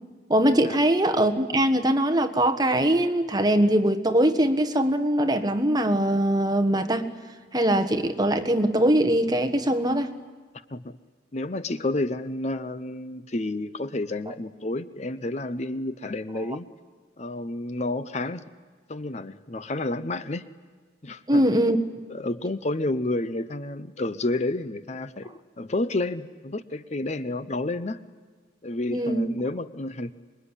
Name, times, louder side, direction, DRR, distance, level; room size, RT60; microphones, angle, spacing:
voice 1, 0.3-7.1 7.5-10.1 21.3-21.8 28.9-29.3, right 1 dB, 20° right, 7 dB, 1.5 m, -22 dB
voice 2, 11.3-16.7 17.2-18.5 18.9-20.5 21.0-21.5 22.1-28.0 28.6-30.1, left 2 dB, 40° left, 13 dB, 0.7 m, -30 dB
26.0 x 22.0 x 9.9 m, 1.5 s
head